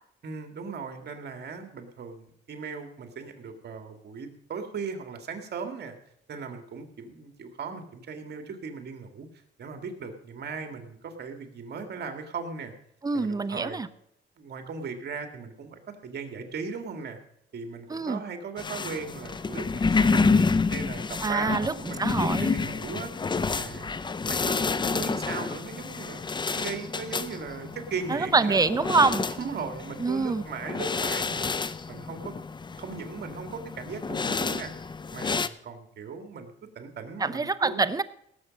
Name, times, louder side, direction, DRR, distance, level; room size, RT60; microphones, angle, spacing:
voice 1, 0.2-6.0 6.3-9.3 9.6-12.7 13.1-13.8 14.4-17.2 17.5-23.1 23.5-23.9 24.3-28.6 29.4-31.5 31.9-32.3 32.8-34.7 35.1-37.8, right 5 dB, 55° right, 6 dB, 2.1 m, -38 dB
voice 2, 13.0-13.9 17.9-18.2 21.2-22.5 28.1-29.3 30.0-30.4 37.2-38.0, right 4 dB, 20° right, 14 dB, 0.7 m, -25 dB
sound 1, 18.6-35.5, left 4 dB, 25° left, 0.5 m, -29 dB
18.0 x 7.4 x 5.3 m, 0.74 s
cardioid pair, 90°, 20 cm